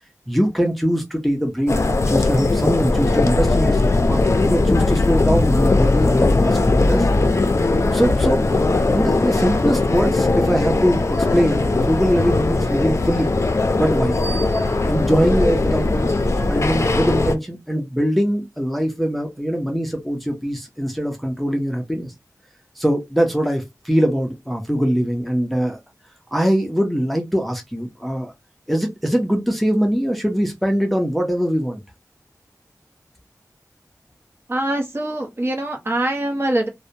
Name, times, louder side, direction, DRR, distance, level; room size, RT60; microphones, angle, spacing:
voice 1, 0.3-7.1 7.9-13.3 13.8-14.2 14.9-16.1 16.5-22.1 22.8-25.8 26.3-28.3 28.7-31.8, equal, ahead, 0.6 m, -22 dB
sound 1, 1.7-17.3, left 2 dB, 50° left, 0.4 m, -19 dB
voice 2, 34.5-36.7, right 1 dB, 40° right, 0.9 m, -23 dB
2.7 x 2.1 x 2.6 m
wide cardioid pair, 60°, 6 cm